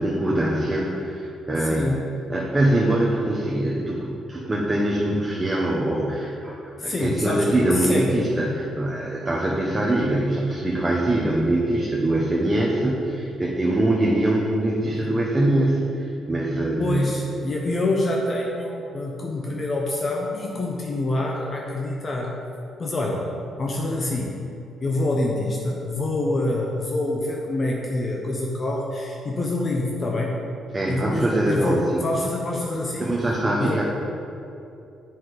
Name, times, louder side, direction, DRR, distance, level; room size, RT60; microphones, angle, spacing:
voice 1, 0.0-2.0 2.3-17.2 30.7-32.0 33.0-33.8, right 1 dB, 20° right, -3 dB, 1.0 m, -23 dB
voice 2, 1.6-2.0 6.8-8.2 16.8-22.3 22.8-23.3 23.6-24.4 24.8-30.3 30.9-33.1 33.6-33.8, left 2 dB, 40° left, -1 dB, 0.9 m, -26 dB
7.1 x 5.9 x 4.9 m, 2.7 s
cardioid pair, 90°, 0 cm